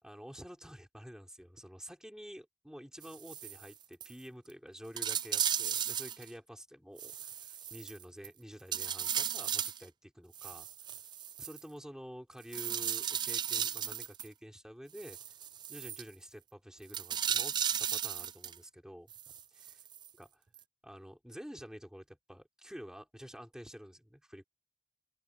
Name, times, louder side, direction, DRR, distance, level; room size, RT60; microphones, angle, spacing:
voice 1, 0.0-10.7 11.4-15.2 15.7-19.1 19.5-19.8 20.2-20.4 20.8-24.4, equal, 5° right, 4.4 m, -49 dB
sound 1, 3.0-3.7 4.0-4.1 4.5-4.6 5.0-6.3 7.0-8.3 8.7-9.8 10.3-11.6 12.5-14.3 15.0-16.0 16.9-18.6 19.1-20.1 20.6-20.7, right 9 dB, 25° right, 0.3 m, -35 dB
open air
head